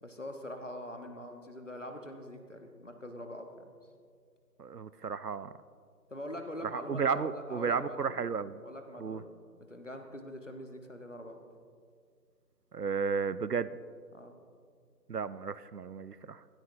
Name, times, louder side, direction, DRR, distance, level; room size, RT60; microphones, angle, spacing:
voice 1, 0.0-3.8 6.1-8.2 8.6-9.3 9.7-11.4 14.1-14.4, left 1 dB, 45° left, 5 dB, 1.1 m, -43 dB
voice 2, 4.6-5.5 6.7-8.6 9.0-9.2 12.7-13.7 15.1-16.4, right 5 dB, 70° right, 16 dB, 0.6 m, -33 dB
16.0 x 13.5 x 2.7 m, 2.1 s
figure-of-eight pair, 180°, 49 cm